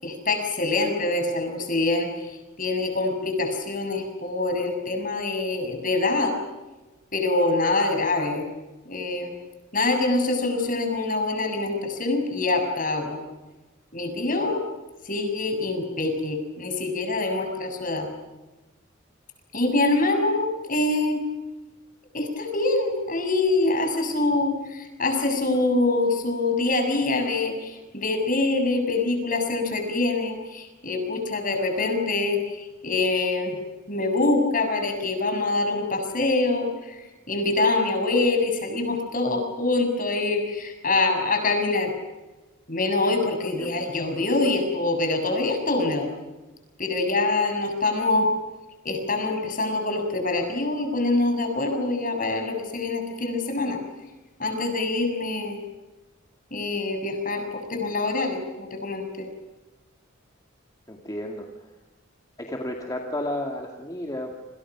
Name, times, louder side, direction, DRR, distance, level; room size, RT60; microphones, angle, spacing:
voice 1, 0.0-2.3 2.6-6.4 7.1-8.5 8.9-9.3 9.7-13.2 13.9-14.6 15.0-18.1 19.5-21.2 22.1-33.6 33.9-41.9 42.7-46.1 46.8-48.3 48.8-53.8 54.4-55.6 56.5-59.2, left 2 dB, 40° left, 5 dB, 6.8 m, -25 dB
voice 2, 43.5-43.9 60.9-61.6 62.4-64.5, left 1 dB, 20° left, 1 dB, 2.3 m, -33 dB
28.5 x 27.5 x 6.1 m, 1.1 s
head